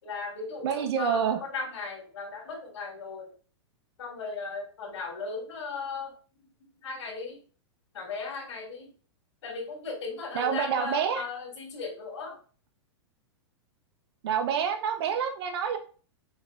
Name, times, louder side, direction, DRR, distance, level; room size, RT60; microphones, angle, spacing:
voice 1, 0.0-3.3 4.0-6.5 6.8-7.4 7.9-8.9 9.4-12.4, left 4 dB, 75° left, 1 dB, 3.6 m, -37 dB
voice 2, 0.6-1.4 10.3-11.2 14.2-15.8, right 8 dB, 60° right, 6 dB, 1.5 m, -27 dB
7.2 x 3.9 x 3.7 m, 0.38 s
hypercardioid pair, 130°, 15 cm